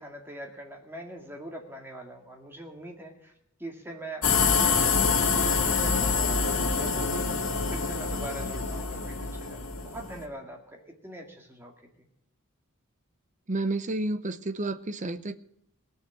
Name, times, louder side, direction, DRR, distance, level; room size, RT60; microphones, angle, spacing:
voice 1, 0.0-3.3 3.6-12.1, right 1 dB, 10° right, 2 dB, 2.1 m, -42 dB
sound 1, 4.2-10.2, left 5 dB, 70° left, 1.8 m, -26 dB
voice 2, 13.5-15.4, right 2 dB, 35° right, 12 dB, 0.7 m, -30 dB
18.5 x 6.6 x 8.8 m, 0.74 s
head